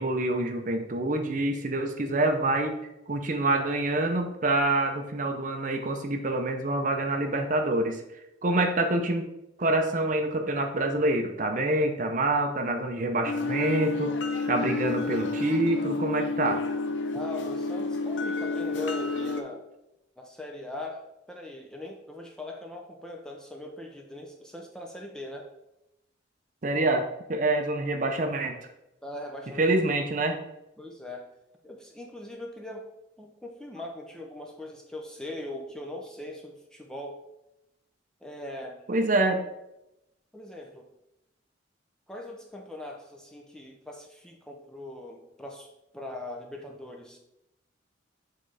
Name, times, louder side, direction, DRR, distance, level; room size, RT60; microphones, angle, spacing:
voice 1, 0.0-2.8 3.1-8.0 8.4-9.2 9.6-14.2 14.5-16.6 26.6-28.6 29.6-30.4 38.9-39.4, right 2 dB, 40° right, 5 dB, 0.6 m, -26 dB
sound 1, 13.3-19.4, left 3 dB, 70° left, 0.5 m, -30 dB
voice 2, 17.1-19.7 20.2-25.5 29.0-29.7 30.8-31.3 31.6-32.9 33.2-37.2 38.2-38.9 40.3-40.9 42.1-45.7 45.9-47.2, left 1 dB, 5° left, 1 dB, 0.5 m, -40 dB
7.5 x 3.8 x 3.3 m, 0.88 s
head